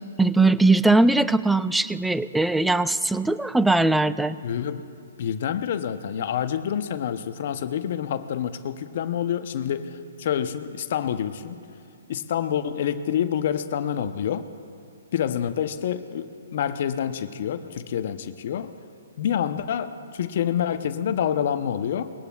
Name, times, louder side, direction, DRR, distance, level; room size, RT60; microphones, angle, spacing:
voice 1, 0.2-4.4, right 2 dB, 5° right, 15 dB, 0.3 m, -20 dB
voice 2, 4.4-4.9 5.2-11.6 12.1-14.5 15.1-18.7 19.2-22.1, left 9 dB, 55° left, 10 dB, 0.7 m, -27 dB
21.5 x 17.5 x 2.4 m, 2.5 s
hypercardioid pair, 135°, 0 cm